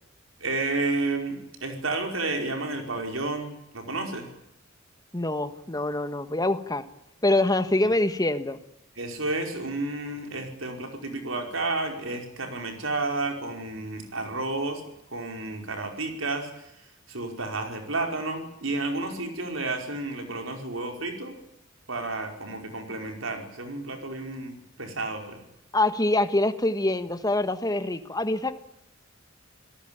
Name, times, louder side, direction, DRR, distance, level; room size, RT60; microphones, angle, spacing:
voice 1, 0.4-4.3 9.0-14.8 15.1-16.5 17.1-21.3 21.9-24.5 24.8-25.4, right 2 dB, 80° right, 4 dB, 5.0 m, -31 dB
voice 2, 5.1-6.8 7.2-8.6 25.7-28.6, left 2 dB, 20° left, 10 dB, 1.5 m, -25 dB
28.0 x 18.0 x 8.9 m, 0.83 s
head